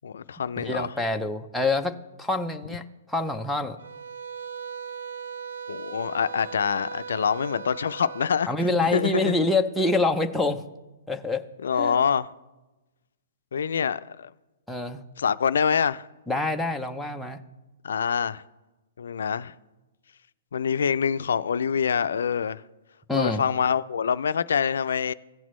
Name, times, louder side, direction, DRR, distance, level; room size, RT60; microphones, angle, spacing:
voice 1, 0.0-0.9 5.7-8.5 8.9-9.4 11.6-12.3 13.5-14.3 15.2-16.1 17.8-18.4 19.0-19.5 20.5-22.6 23.1-25.1, left 7 dB, 80° left, 0.4 m, -25 dB
voice 2, 0.6-3.8 8.5-10.6 11.1-11.4 11.8-12.0 14.7-15.0 16.3-17.4 23.1-23.4, left 2 dB, ahead, 0.5 m, -26 dB
sound 1, 3.8-8.4, right 6 dB, 85° right, 0.6 m, -38 dB
16.5 x 6.1 x 3.1 m
hypercardioid pair, 160°, 0 cm